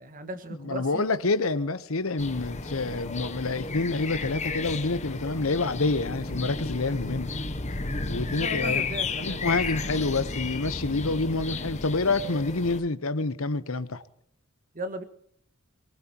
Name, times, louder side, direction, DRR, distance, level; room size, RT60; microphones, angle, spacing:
voice 1, 0.0-1.0 8.4-9.9 14.7-15.0, right 1 dB, 40° right, 1.7 m, -37 dB
voice 2, 0.6-7.3 8.0-8.9 9.2-14.0, left 3 dB, 70° left, 1.0 m, -27 dB
sound 1, 2.2-12.8, left 3 dB, 35° left, 1.4 m, -33 dB
24.0 x 19.5 x 3.0 m
head